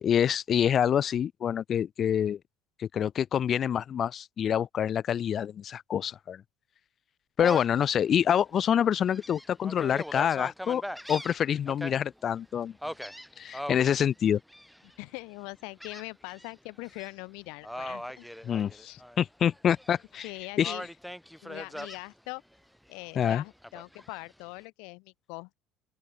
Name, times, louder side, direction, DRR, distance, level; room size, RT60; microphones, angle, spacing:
voice 1, 0.0-2.4 2.8-6.4 7.4-10.8 11.1-12.7 13.4-14.4 18.4-20.3 20.6-20.7 23.2-23.4, left 9 dB, 35° left, 0.6 m, -26 dB
Gull seagull, 7.4-7.8 8.3-8.4 9.0-11.9 12.8-14.0 14.5-14.9 15.8-16.5 16.8-17.1 17.6-19.2 19.5-20.3 20.6-22.0 23.2-24.2, equal, ahead, 3.0 m, -40 dB
voice 2, 15.0-18.3 18.8-19.0 20.2-20.9 21.4-22.4 22.9-25.6, left 32 dB, 75° left, 2.0 m, -42 dB
open air
cardioid pair, 125°, 0 cm